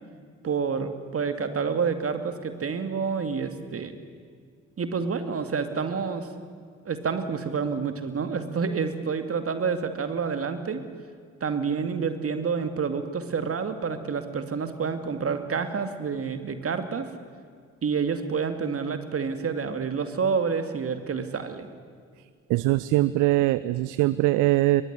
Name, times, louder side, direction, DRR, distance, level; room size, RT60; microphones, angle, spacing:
voice 1, 0.4-4.0 4.8-6.3 6.8-10.8 11.4-17.1 17.8-21.7, right 5 dB, 35° right, 8 dB, 2.4 m, -28 dB
voice 2, 22.5-24.8, right 17 dB, 55° right, 17 dB, 0.7 m, -22 dB
22.5 x 22.5 x 10.0 m, 2.1 s
figure-of-eight pair, 45°, 38 cm